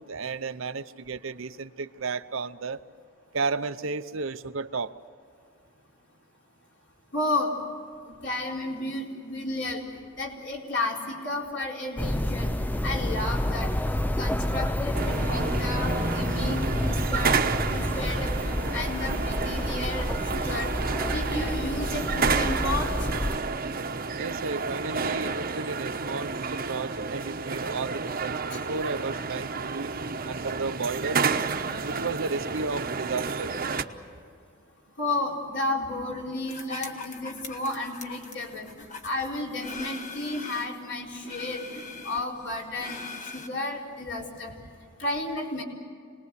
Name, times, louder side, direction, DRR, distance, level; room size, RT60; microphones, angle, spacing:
voice 1, 0.0-2.8 3.3-4.9 24.1-30.0 30.3-31.2 31.8-33.5, right 4 dB, 70° right, 11 dB, 0.8 m, -33 dB
voice 2, 7.1-7.6 8.1-9.8 10.2-12.5 12.8-13.7 14.2-17.4 17.7-23.1 28.5-28.6 35.0-44.5 45.0-45.6, left 2 dB, 55° left, -1 dB, 4.3 m, -32 dB
sound 1, 12.0-23.4, left 1 dB, 10° left, 0.6 m, -29 dB
sound 2, 14.9-33.8, right 4 dB, 45° right, 1.1 m, -30 dB
sound 3, 36.5-40.8 41.2-43.5, left 3 dB, 35° left, 1.4 m, -41 dB
27.0 x 20.5 x 8.3 m, 2.2 s
head